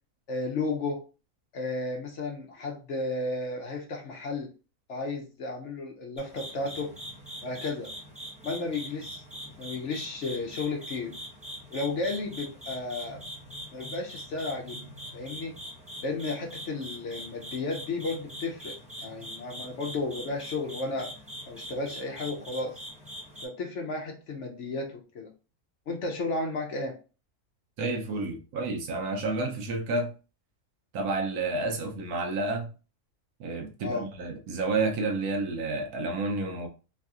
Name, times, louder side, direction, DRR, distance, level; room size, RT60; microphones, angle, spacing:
voice 1, 0.3-1.0 1.5-4.5 4.9-6.9 7.4-7.9 8.4-9.2 9.6-11.1 11.7-13.2 13.7-14.9 15.1-15.5 16.0-18.7 19.0-21.1 21.5-22.8 23.4-25.3 25.9-26.9 33.8-34.1, left 3 dB, 65° left, 0.8 m, -33 dB
sound 1, 6.2-23.5, equal, 10° right, 0.4 m, -43 dB
voice 2, 27.8-30.1 30.9-32.7 33.4-36.7, right 3 dB, 75° right, 1.1 m, -30 dB
3.2 x 2.6 x 2.3 m
omnidirectional pair, 1.6 m